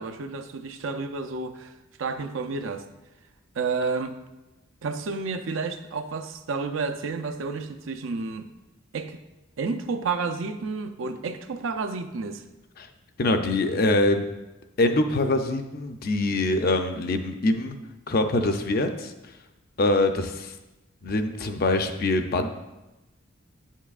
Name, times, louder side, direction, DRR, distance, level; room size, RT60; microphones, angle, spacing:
voice 1, 0.0-1.7 2.0-2.9 3.6-4.1 4.8-8.5 8.9-9.2 9.6-12.4, right 4 dB, 75° right, 8 dB, 0.5 m, -30 dB
voice 2, 13.2-14.3 14.8-17.8 18.1-19.1 19.8-20.5 21.0-22.5, left 2 dB, 50° left, 6 dB, 0.5 m, -24 dB
8.7 x 7.3 x 2.4 m, 1.0 s
head